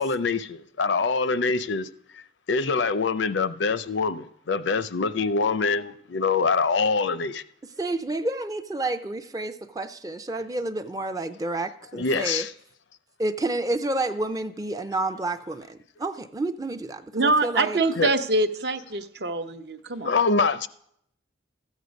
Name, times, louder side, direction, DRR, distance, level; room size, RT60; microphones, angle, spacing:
voice 1, 0.0-1.9 2.5-7.4 11.9-12.5 18.0-18.1 20.0-20.7, left 4 dB, 80° left, 0.5 m, -24 dB
voice 2, 7.6-12.5 13.2-17.8, right 2 dB, 20° right, 0.4 m, -30 dB
voice 3, 17.1-20.2, right 2 dB, 65° right, 0.7 m, -24 dB
13.5 x 8.2 x 5.2 m
head